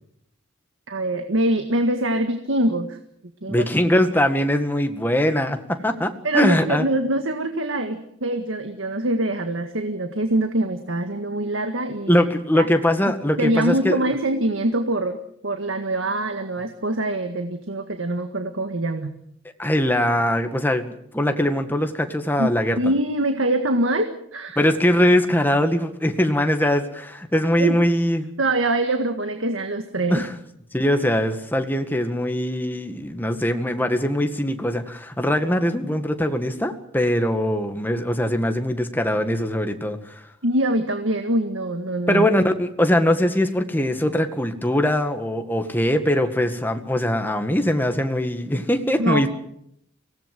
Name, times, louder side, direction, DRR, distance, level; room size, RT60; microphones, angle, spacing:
voice 1, 0.9-3.0 3.4-3.7 6.2-12.2 12.5-12.7 13.4-15.2 15.4-19.1 22.4-22.5 22.8-24.6 27.6-27.8 28.4-30.3 40.4-42.3 49.0-49.3, right 1 dB, 85° right, 7 dB, 1.8 m, -24 dB
voice 2, 3.5-6.9 12.1-14.0 19.6-22.8 24.6-28.3 30.1-30.3 30.7-40.2 42.1-49.3, left 1 dB, 10° left, 7 dB, 1.8 m, -21 dB
24.5 x 18.0 x 7.7 m, 0.73 s
head